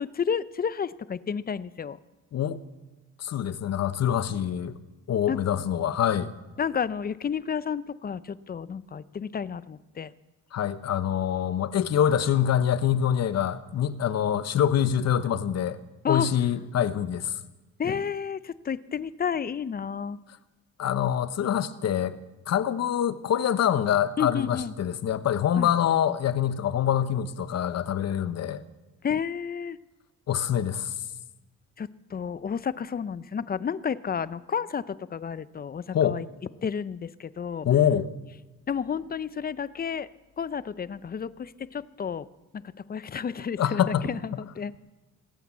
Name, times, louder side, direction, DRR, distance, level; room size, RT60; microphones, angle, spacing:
voice 1, 0.0-2.0 5.3-5.4 6.6-10.1 16.0-16.3 16.5-16.6 17.8-20.2 24.2-24.7 25.6-25.7 29.0-29.8 31.8-36.3 36.6-37.7 38.7-40.1 40.4-42.3 42.5-42.6 42.9-44.7, left 7 dB, 30° left, 0.6 m, -31 dB
voice 2, 3.2-4.8 5.1-6.3 10.5-15.8 16.1-17.3 20.8-22.2 22.5-28.6 30.3-30.9 35.9-36.2 37.6-38.1 43.6-44.0, left 9 dB, 55° left, 0.9 m, -25 dB
18.0 x 8.5 x 8.3 m
cardioid pair, 90°, 30 cm